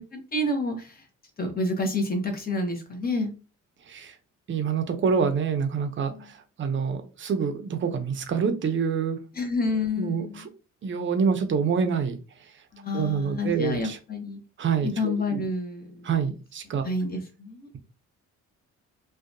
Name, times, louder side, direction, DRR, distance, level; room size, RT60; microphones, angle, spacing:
voice 1, 0.1-1.0 1.4-3.3 6.1-6.3 9.3-10.5 12.7-14.4 14.8-16.1 16.8-17.7, left 2 dB, 30° left, 4 dB, 0.8 m, -29 dB
voice 2, 4.5-9.2 10.0-10.4 10.8-12.2 12.9-14.0 14.6-15.4 16.0-16.9, right 6 dB, 40° right, 7 dB, 0.6 m, -26 dB
2.6 x 2.2 x 2.5 m, 0.33 s
cardioid pair, 90°, 30 cm